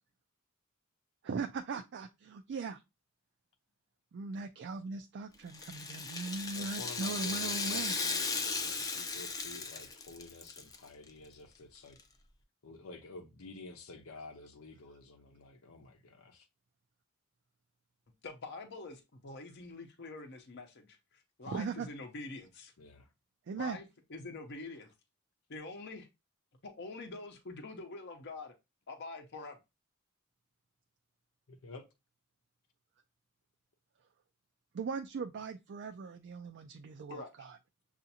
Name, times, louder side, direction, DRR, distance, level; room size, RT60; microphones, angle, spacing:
voice 1, 1.2-2.8 4.1-7.9 21.4-21.9 23.5-23.8 34.7-37.6, right 4 dB, 55° right, 0.4 m, -39 dB
Rattle (instrument), 5.5-10.8 11.1-11.2 12.0-12.1, left 4 dB, 15° left, 0.5 m, -36 dB
voice 2, 6.5-12.0 12.6-16.5 22.8-23.1 31.5-31.8, left 3 dB, 90° left, 0.7 m, -50 dB
voice 3, 18.2-22.7 23.6-23.8 24.1-24.9 25.5-26.1 26.6-28.5 28.9-29.6 37.1-37.3, left 3 dB, 55° left, 0.7 m, -45 dB
6.8 x 2.5 x 2.7 m
head